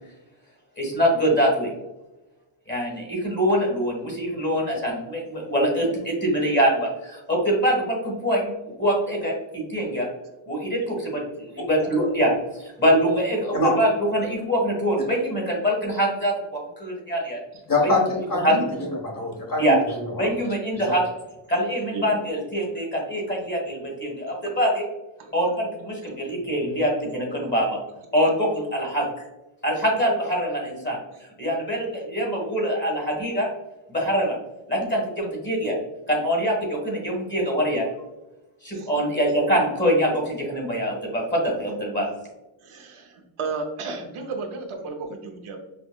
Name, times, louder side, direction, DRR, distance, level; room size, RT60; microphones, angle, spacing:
voice 1, 0.8-1.7 2.7-8.5 8.8-10.1 10.5-11.2 11.5-12.3 12.6-17.4 18.4-18.5 19.6-19.8 20.1-21.0 21.5-24.8 25.3-27.8 28.1-29.1 29.6-31.0 31.4-33.5 33.9-34.3 34.7-35.8 36.1-37.8 38.6-42.1, equal, 20° left, -2 dB, 1.3 m, -24 dB
voice 2, 17.7-19.8 20.2-20.3 20.9-21.0, left 2 dB, 40° left, -1 dB, 1.2 m, -24 dB
voice 3, 18.4-18.9 21.9-22.1 25.2-25.3 38.7-38.9 42.6-45.6, right 4 dB, 75° right, 3 dB, 0.7 m, -33 dB
5.6 x 2.1 x 2.2 m, 1.0 s
wide cardioid pair, 110°, 49 cm